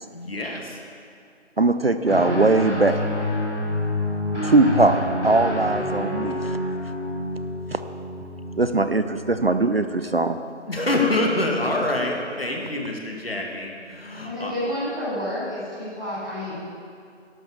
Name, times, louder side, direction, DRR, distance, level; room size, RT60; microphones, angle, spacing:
voice 1, 0.1-0.8 10.7-14.5, left 2 dB, 55° left, 0 dB, 2.3 m, -26 dB
voice 2, 1.6-3.0 4.4-5.0 5.2-6.4 7.7-7.8 8.6-10.4, right 2 dB, 55° right, 10 dB, 0.6 m, -20 dB
Guitar, 2.1-9.7, left 1 dB, 75° left, 3.3 m, -28 dB
voice 3, 14.2-16.6, left 1 dB, 5° left, -16 dB, 1.8 m, -30 dB
12.0 x 11.0 x 7.1 m, 2.3 s
figure-of-eight pair, 175°, 36 cm